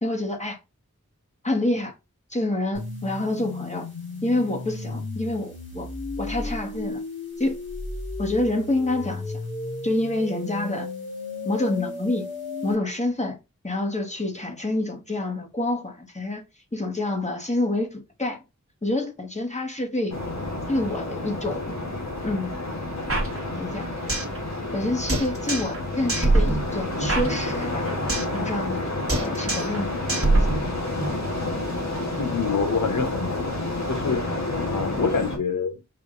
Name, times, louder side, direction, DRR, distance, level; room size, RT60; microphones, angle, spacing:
voice 1, 0.0-0.6 1.4-1.9 2.3-3.9 4.2-5.9 6.2-7.0 7.4-7.6 8.2-9.4 9.8-10.9 11.4-12.2 12.6-13.4 13.6-16.4 16.7-18.4 18.8-20.2 20.7-21.8 22.2-22.6 23.6-23.9 24.7-27.9 28.3-28.9 29.2-30.4, left 2 dB, 20° left, 1.4 m, -27 dB
sound 1, 2.7-12.7, left 2 dB, 40° left, 2.2 m, -34 dB
sound 2, 20.1-35.4, left 2 dB, 60° left, 1.6 m, -30 dB
sound 3, 23.1-24.4 24.6-24.7 25.1-25.8 26.1-28.4 28.6-28.8 29.1-29.8 30.1-31.1, right 2 dB, 45° right, 1.3 m, -24 dB
voice 2, 32.2-33.6 33.9-34.2 34.6-35.8, left 5 dB, 80° left, 0.9 m, -26 dB
4.9 x 2.6 x 3.8 m
wide cardioid pair, 55°, 31 cm